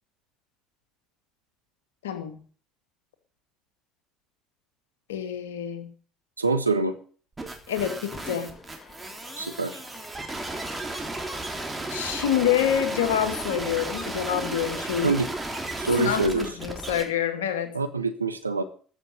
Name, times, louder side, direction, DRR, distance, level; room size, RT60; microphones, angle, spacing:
voice 1, 2.0-2.4 5.1-5.9 7.7-8.5 11.9-15.1 16.0-17.7, left 9 dB, 75° left, 7 dB, 2.1 m, -27 dB
voice 2, 6.4-6.9 9.4-9.8 15.0-15.3 15.8-16.5 17.7-18.6, right 3 dB, 90° right, 8 dB, 1.2 m, -25 dB
sound 1, 7.4-17.0, right 2 dB, 15° right, 3.2 m, -34 dB
Cheering / Crowd, 8.1-15.7, left 3 dB, 20° left, 4.4 m, -46 dB
14.0 x 6.8 x 8.1 m, 0.43 s
figure-of-eight pair, 55°, 0 cm